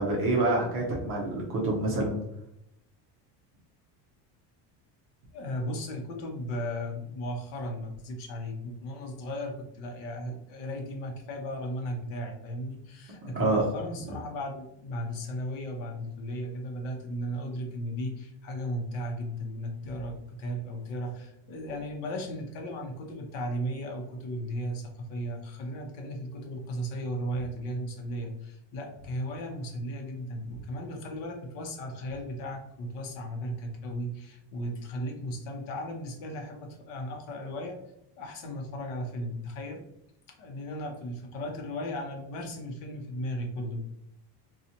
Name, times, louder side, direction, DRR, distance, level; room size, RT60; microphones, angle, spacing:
voice 1, 0.0-2.2 13.3-13.6, right 2 dB, 25° right, -3 dB, 0.5 m, -27 dB
voice 2, 5.3-37.8 38.2-39.8 40.3-43.8, equal, 60° left, 3 dB, 0.9 m, -36 dB
3.9 x 2.4 x 2.8 m, 0.78 s
cardioid pair, 175°, 50 cm